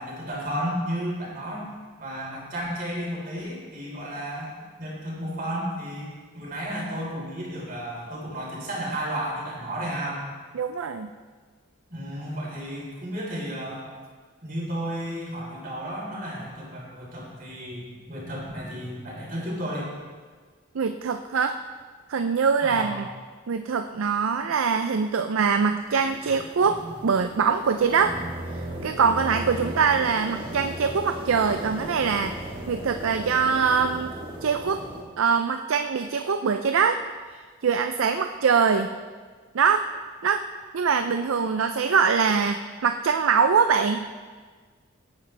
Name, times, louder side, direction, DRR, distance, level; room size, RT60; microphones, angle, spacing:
voice 1, 0.0-1.7 2.0-4.5 4.8-10.2 11.9-13.8 14.4-19.9 22.6-22.9, equal, 45° right, -4 dB, 3.8 m, -33 dB
voice 2, 10.5-11.1 20.7-21.6 22.1-23.0 23.5-28.2 28.5-32.4 32.7-34.1 34.4-34.8 35.2-37.0 37.3-38.9 39.5-39.9 40.2-40.4 40.7-44.0, right 6 dB, 85° right, 8 dB, 0.5 m, -23 dB
sound 1, 25.8-35.0, right 1 dB, 25° right, 1.7 m, -37 dB
17.5 x 9.1 x 3.4 m, 1.5 s
head